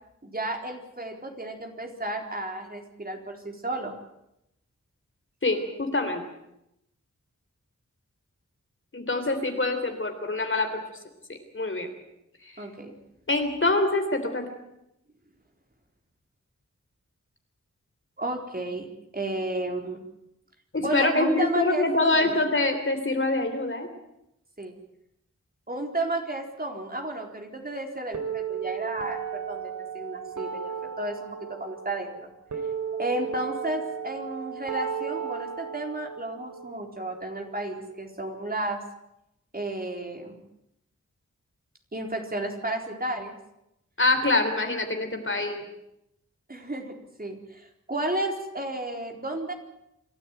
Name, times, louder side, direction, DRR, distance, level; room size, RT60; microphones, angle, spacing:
voice 1, 0.2-3.9 12.6-13.0 18.2-18.9 19.1-20.0 20.8-22.4 24.6-24.7 25.7-32.3 33.0-38.8 39.5-40.4 41.9-43.4 46.5-49.5, right 1 dB, 30° right, 3 dB, 4.1 m, -32 dB
voice 2, 5.4-6.2 8.9-10.7 11.5-11.9 13.3-14.4 20.7-23.9 44.0-45.6, left 2 dB, 45° left, 6 dB, 3.5 m, -25 dB
sound 1, 28.1-38.1, right 7 dB, 85° right, 3.1 m, -35 dB
27.0 x 13.0 x 9.2 m, 0.84 s
wide cardioid pair, 75°, 29 cm